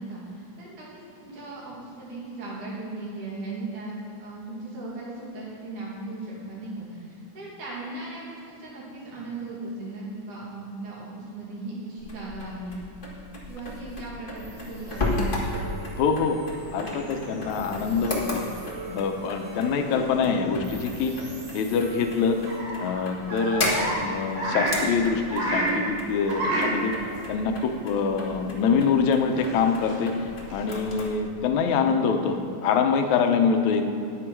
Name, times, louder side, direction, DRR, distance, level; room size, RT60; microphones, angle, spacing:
voice 1, 0.0-12.8 13.5-15.3 22.1-22.2, right 2 dB, 75° right, -6 dB, 3.7 m, -37 dB
sound 1, 12.0-31.1, left 1 dB, 90° left, 0.4 m, -35 dB
sound 2, 14.3-22.6, right 1 dB, 35° right, 2.5 m, -41 dB
voice 2, 16.0-16.4 16.7-18.4 18.9-21.2 21.5-22.4 22.8-26.9 27.3-30.1 30.5-33.9, left 5 dB, 75° left, 5 dB, 1.9 m, -25 dB
sound 3, 20.8-20.9 22.5-24.0 24.3-25.7 26.3-26.7 27.0-27.1 28.2-28.3 29.2-30.7, right 1 dB, 90° right, 4.7 m, -29 dB
9.9 x 9.8 x 4.6 m, 2.7 s
omnidirectional pair, 3.7 m